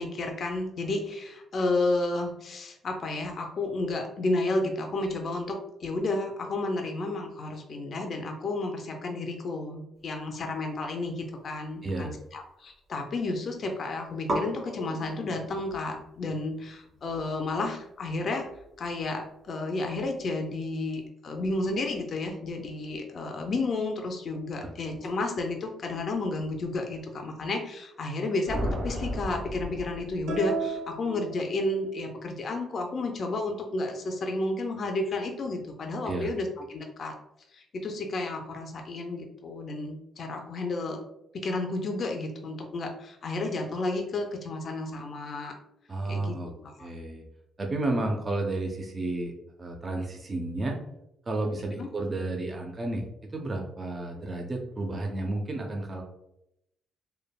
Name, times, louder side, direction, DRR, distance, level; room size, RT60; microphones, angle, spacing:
voice 1, 0.0-18.5 18.8-37.1 37.5-41.0 41.3-45.5 46.1-46.3 46.6-46.9 51.8-51.9, left 2 dB, 50° left, 3 dB, 0.4 m, -32 dB
sound 1, 10.7-12.5 12.8-13.4 13.7-13.8 14.2-21.1, right 1 dB, 50° right, 1.4 m, -40 dB
voice 2, 11.8-12.1 24.6-24.7 36.0-36.3 45.9-46.5 46.8-47.2 47.6-49.3 49.6-50.8 51.3-53.1 53.3-56.0, right 2 dB, 30° right, 1 dB, 0.5 m, -31 dB
sound 2, 28.5-30.6, equal, 65° right, 1.2 m, -33 dB
sound 3, 30.3-32.1, right 5 dB, 85° right, 0.7 m, -35 dB
3.2 x 2.1 x 2.2 m, 0.82 s
cardioid pair, 90°, 0 cm